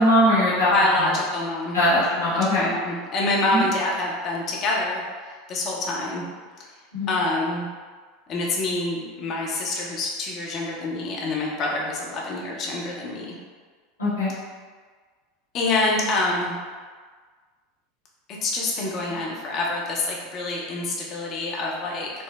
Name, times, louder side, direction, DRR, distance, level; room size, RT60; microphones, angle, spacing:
voice 1, 0.0-0.7 1.0-1.1 1.7-2.7 3.5-3.6 6.9-7.1 14.0-14.3 19.1-19.2, left 1 dB, 85° left, -11 dB, 1.1 m, -20 dB
voice 2, 0.7-1.8 2.1-5.0 5.5-6.2 7.1-7.7 8.3-13.3 15.5-16.6 18.4-22.1, left 2 dB, 40° left, -3 dB, 0.7 m, -26 dB
4.6 x 2.0 x 2.3 m, 1.5 s
figure-of-eight pair, 80°, 0 cm